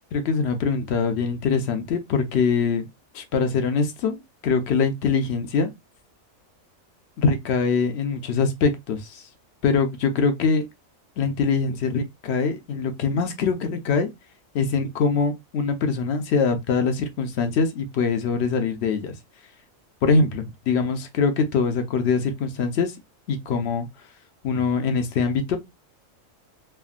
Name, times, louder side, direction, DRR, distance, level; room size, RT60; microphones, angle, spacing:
voice 1, 0.1-2.9 3.1-5.7 7.2-9.2 9.6-10.6 11.2-14.1 14.5-19.1 20.0-23.0 23.3-23.9 24.4-25.6, left 5 dB, 65° left, 0.7 m, -23 dB
3.3 x 2.1 x 2.3 m
omnidirectional pair, 1.4 m